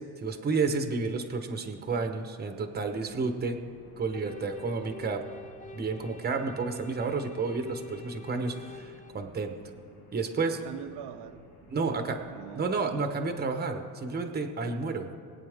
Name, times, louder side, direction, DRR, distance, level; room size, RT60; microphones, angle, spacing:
voice 1, 0.2-3.6 4.0-5.2 5.7-9.5 10.1-10.6 11.7-12.2 12.5-15.1, right 4 dB, 25° right, 6 dB, 1.0 m, -31 dB
sound 1, 2.7-13.1, left 2 dB, 65° left, 2.7 m, -55 dB
sound 2, 4.1-9.1, left 4 dB, 20° left, 0.6 m, -47 dB
voice 2, 10.5-11.5 11.8-12.9, right 10 dB, 80° right, 9 dB, 0.8 m, -43 dB
21.0 x 8.7 x 3.6 m, 2.5 s
cardioid pair, 125°, 40 cm